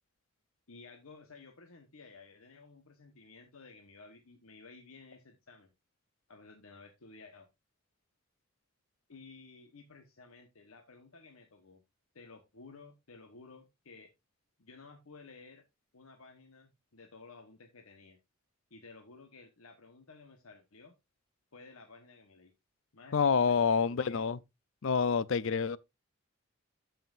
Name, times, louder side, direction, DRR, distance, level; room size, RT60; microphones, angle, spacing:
voice 1, 0.7-5.7 6.3-7.5 9.1-11.8 12.1-14.1 14.6-15.6 15.9-18.2 18.7-20.9 21.5-22.5 22.9-24.2, left 4 dB, 80° left, 1.1 m, -54 dB
voice 2, 23.1-24.4 24.8-25.8, left 6 dB, 60° left, 0.5 m, -27 dB
12.5 x 5.8 x 2.5 m
head